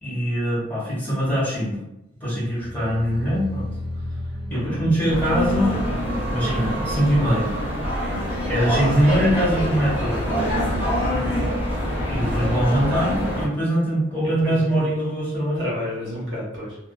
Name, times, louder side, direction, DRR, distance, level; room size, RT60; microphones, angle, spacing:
voice 1, 0.0-1.8 2.2-3.7 4.5-5.7 6.3-7.5 8.5-10.3 12.1-15.7, equal, 10° left, -9 dB, 1.3 m, -22 dB
sound 1, 2.5-9.4 9.7-10.1 10.5-10.6, equal, 25° right, 0.3 m, -36 dB
voice 2, 4.5-4.8 11.1-11.4 14.4-14.8 15.5-16.8, left 1 dB, 65° right, -5 dB, 1.0 m, -31 dB
sound 2, 5.1-13.5, equal, 10° right, 0.8 m, -25 dB
2.6 x 2.2 x 2.3 m, 0.87 s
head